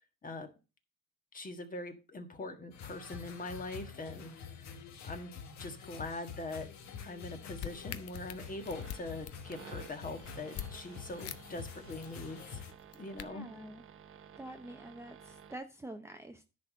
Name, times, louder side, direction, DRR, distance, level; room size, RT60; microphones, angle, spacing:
voice 1, 1.3-4.3 5.0-5.3 5.6-6.7 7.0-12.6 12.9-13.5, left 2 dB, 30° left, 6 dB, 1.6 m, -42 dB
sound 1, 2.7-12.7, left 6 dB, 70° left, 1.4 m, -47 dB
sound 2, 7.3-10.7 11.2-11.4 11.7-12.1 12.7-13.2, left 11 dB, 55° left, 0.7 m, -44 dB
sound 3, 8.4-15.6, right 8 dB, 45° right, 0.8 m, -54 dB
voice 2, 13.1-13.8 14.4-16.4, right 1 dB, 10° right, 5 dB, 0.7 m, -46 dB
10.5 x 4.2 x 6.2 m, 0.31 s
cardioid pair, 115°, 29 cm